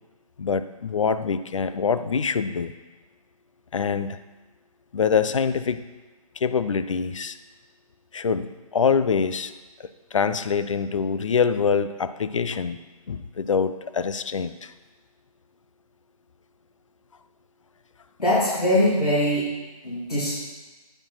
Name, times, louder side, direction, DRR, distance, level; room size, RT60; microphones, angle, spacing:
voice 1, 0.4-2.7 3.7-4.2 4.9-5.8 6.4-7.4 8.1-9.5 10.1-12.8 13.1-14.7, left 6 dB, 55° left, 12 dB, 0.5 m, -24 dB
voice 2, 18.2-19.5 19.8-20.3, left 1 dB, 90° left, -9 dB, 2.9 m, -22 dB
8.9 x 4.9 x 5.6 m, 1.2 s
figure-of-eight pair, 150°, 19 cm